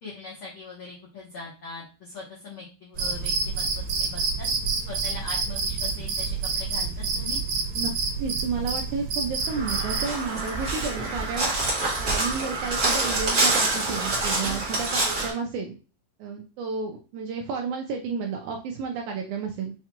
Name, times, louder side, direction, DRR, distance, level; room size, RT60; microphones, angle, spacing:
voice 1, 0.0-4.5 4.9-7.4 14.3-14.6, left 3 dB, 85° left, -6 dB, 1.1 m, -41 dB
Cricket, 3.0-10.1, right 4 dB, 65° right, 2.1 m, -28 dB
voice 2, 8.2-11.5 12.0-15.7 16.2-19.7, right 5 dB, 80° right, 2 dB, 1.8 m, -31 dB
Crow, 9.5-15.3, right 2 dB, 45° right, 1.2 m, -26 dB
5.6 x 2.2 x 2.9 m, 0.34 s
omnidirectional pair, 4.0 m